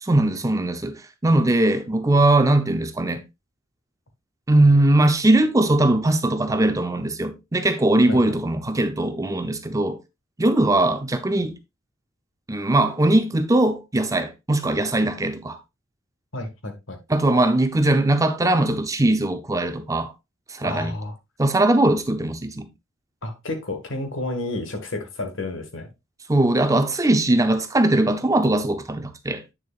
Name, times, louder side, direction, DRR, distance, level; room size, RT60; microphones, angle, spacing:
voice 1, 0.0-3.2 4.5-10.0 10.4-11.5 12.5-15.6 17.1-20.1 20.5-20.9 21.4-22.7 26.3-29.4, right 1 dB, 15° right, 0.6 m, -20 dB
voice 2, 16.3-17.0 20.6-21.1 23.2-25.9, left 2 dB, 65° left, 1.6 m, -31 dB
8.6 x 6.7 x 2.4 m
head